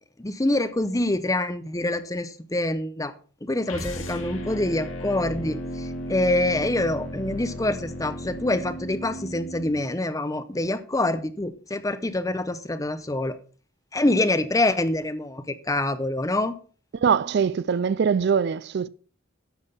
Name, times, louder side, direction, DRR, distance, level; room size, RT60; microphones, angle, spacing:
voice 1, 0.2-3.1 3.4-13.4 13.9-16.5, left 1 dB, 15° left, 0.7 m, -26 dB
sound 1, 3.7-9.8, equal, 85° left, 2.4 m, -35 dB
voice 2, 17.0-18.9, right 6 dB, 55° right, 0.4 m, -22 dB
10.5 x 6.4 x 5.5 m
head